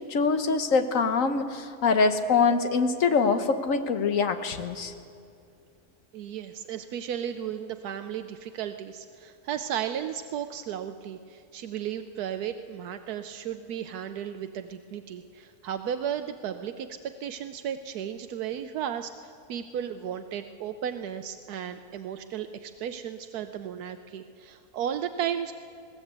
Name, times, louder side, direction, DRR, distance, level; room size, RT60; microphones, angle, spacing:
voice 1, 0.1-4.9, left 4 dB, 60° left, 8 dB, 1.5 m, -24 dB
voice 2, 6.1-25.5, right 9 dB, 85° right, 8 dB, 1.2 m, -34 dB
20.5 x 17.0 x 8.1 m, 2.4 s
omnidirectional pair, 1.6 m